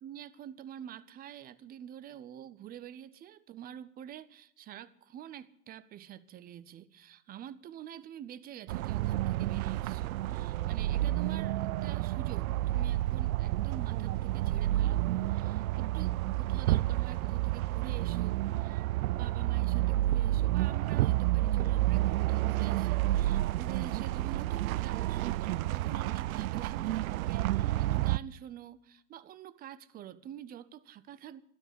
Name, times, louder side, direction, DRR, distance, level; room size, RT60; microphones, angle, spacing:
voice 1, 0.0-15.0 15.3-31.4, right 10 dB, 20° right, 0.6 m, -47 dB
sound 1, 8.7-28.2, right 15 dB, 70° right, 0.5 m, -30 dB
12.5 x 12.5 x 8.2 m
hypercardioid pair, 110°, 45 cm